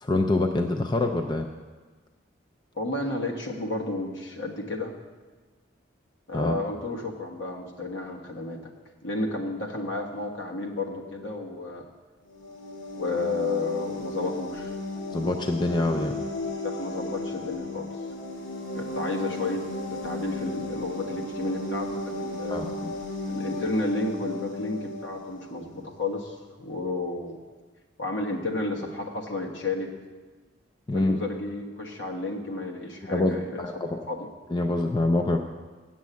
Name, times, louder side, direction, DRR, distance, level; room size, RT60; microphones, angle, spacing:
voice 1, 0.0-1.5 6.3-6.6 15.1-16.2 22.5-22.9 30.9-31.2 33.1-34.0 34.5-35.4, left 2 dB, 25° left, 4 dB, 0.4 m, -25 dB
voice 2, 2.7-4.9 6.3-8.7 9.0-11.8 12.9-14.8 16.6-17.9 18.7-22.6 23.3-27.4 28.0-29.9 30.9-33.6 34.1-34.3, left 2 dB, 70° left, 1 dB, 1.4 m, -32 dB
sound 1, 12.3-25.9, left 1 dB, 85° left, 2.2 m, -35 dB
7.5 x 7.2 x 8.2 m, 1.4 s
head